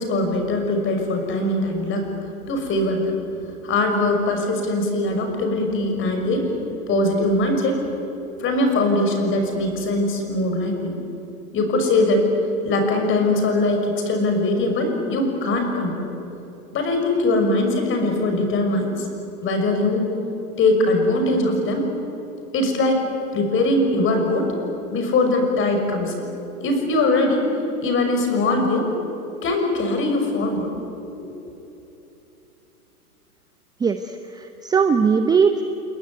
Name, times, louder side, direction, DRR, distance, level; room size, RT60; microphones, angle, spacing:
voice 1, 0.0-2.1 2.5-3.2 3.6-6.5 6.9-7.8 8.4-11.0 11.5-12.2 12.6-16.1 16.7-19.1 19.4-20.1 20.6-21.9 22.5-23.0 23.3-24.5 24.9-26.3 26.6-27.5 27.8-28.9 29.4-30.7, left 2 dB, 25° left, 4 dB, 6.1 m, -21 dB
voice 2, 33.8-35.6, right 6 dB, 10° right, 8 dB, 0.8 m, -20 dB
29.5 x 20.5 x 9.7 m, 2.9 s
hypercardioid pair, 130°, 45 cm